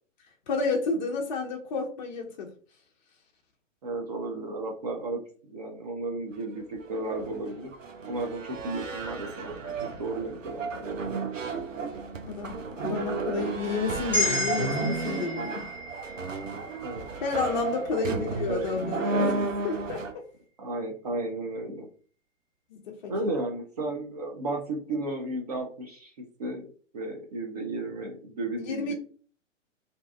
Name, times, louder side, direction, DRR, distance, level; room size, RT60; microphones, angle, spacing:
voice 1, 0.5-2.5 12.3-15.7 17.2-20.2 22.7-23.1 28.6-28.9, left 4 dB, 40° left, 0.4 m, -31 dB
voice 2, 3.8-5.2 5.5-7.7 8.1-9.7 10.0-11.4 16.8-17.0 17.6-18.8 20.6-21.9 23.1-26.1 26.4-26.7 26.9-28.9, right 2 dB, 35° right, 0.4 m, -34 dB
sound 1, 6.6-20.1, right 4 dB, 90° right, 0.5 m, -33 dB
sound 2, 14.1-18.4, left 1 dB, 5° left, 0.7 m, -33 dB
2.5 x 2.2 x 2.4 m
figure-of-eight pair, 115°, 38 cm